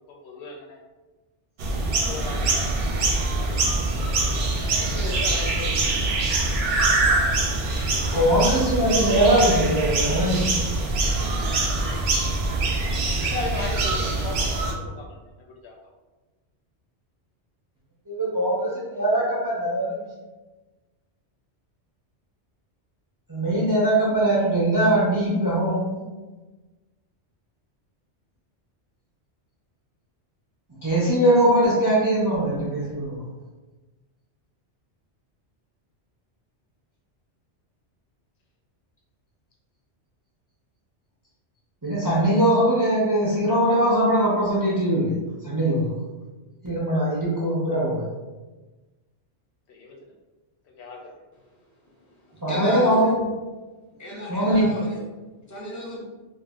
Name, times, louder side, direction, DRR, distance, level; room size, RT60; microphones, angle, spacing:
voice 1, 0.2-0.8 1.8-3.6 3.9-4.3 4.7-6.0 13.2-15.2 15.6-15.7 49.7-49.9 50.8-51.1, left 3 dB, 70° left, -1 dB, 0.8 m, -37 dB
sound 1, 1.6-14.7, right 2 dB, 65° right, 0.7 m, -24 dB
voice 2, 8.0-10.6 11.2-12.0 12.4-12.5 18.1-20.1 23.3-26.0 30.8-33.2 41.8-45.1 45.4-45.9 46.6-48.0 52.4-53.2 54.3-54.7, right 1 dB, 25° right, -6 dB, 0.4 m, -21 dB
voice 3, 52.2-53.1 54.0-55.0 55.5-56.0, left 1 dB, 20° left, -5 dB, 0.6 m, -34 dB
2.5 x 2.0 x 3.5 m, 1.2 s
omnidirectional pair, 1.2 m